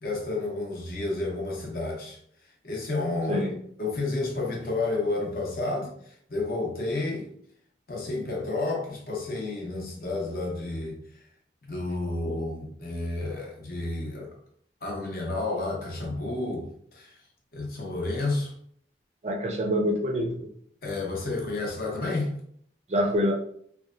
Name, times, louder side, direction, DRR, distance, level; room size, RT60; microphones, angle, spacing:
voice 1, 0.0-2.2 2.6-3.5 3.8-7.3 7.9-11.0 11.6-14.3 14.8-17.1 17.5-18.5 20.8-22.3, left 2 dB, 55° left, 0.8 m, -31 dB
voice 2, 19.2-20.5 22.9-23.3, equal, 35° right, 0.4 m, -26 dB
3.0 x 2.2 x 2.4 m
head